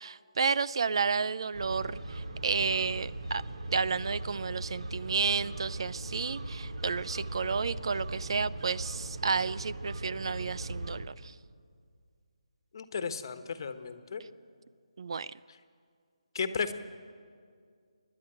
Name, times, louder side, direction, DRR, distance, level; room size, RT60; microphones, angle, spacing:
voice 1, 0.0-3.4 3.7-11.3 15.0-15.3, right 5 dB, 50° right, 18 dB, 0.5 m, -31 dB
sound 1, 1.5-11.1, right 1 dB, 70° right, 2.4 m, -39 dB
voice 2, 12.7-14.2 16.3-16.7, left 6 dB, 45° left, 10 dB, 1.3 m, -34 dB
29.0 x 11.0 x 8.9 m, 2.2 s
figure-of-eight pair, 165°, 3 cm